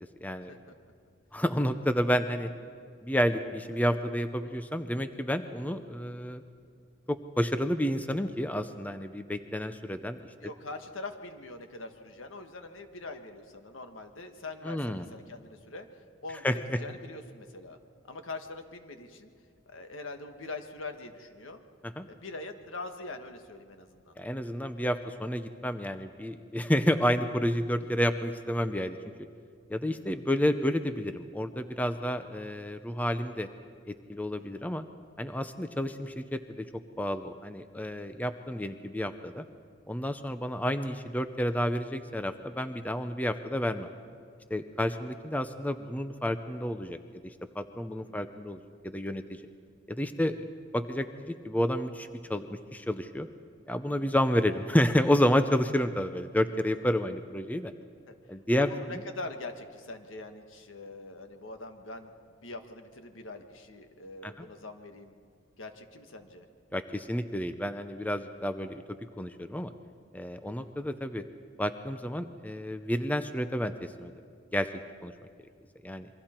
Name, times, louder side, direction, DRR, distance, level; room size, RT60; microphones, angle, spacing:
voice 1, 1.3-2.5 3.0-6.4 7.1-10.3 14.6-15.1 16.4-16.8 21.8-22.1 24.2-29.0 29.7-33.5 33.9-34.8 35.2-36.7 37.0-39.4 39.9-43.9 44.5-49.4 49.9-50.5 50.7-53.3 53.7-57.7 58.3-58.7 64.2-64.5 66.7-68.8 69.2-69.7 70.1-71.2 71.6-74.1 74.5-74.7 75.0-75.1 75.8-76.1, equal, 10° left, 9 dB, 0.6 m, -30 dB
voice 2, 10.4-15.9 16.2-17.8 18.0-19.3 19.6-21.6 22.1-24.1 34.4-34.7 47.9-48.2 53.9-54.2 58.6-62.1 62.4-65.1 65.6-66.5 70.4-70.7, left 2 dB, 85° left, 6 dB, 1.5 m, -43 dB
27.5 x 23.5 x 4.5 m, 2.2 s
head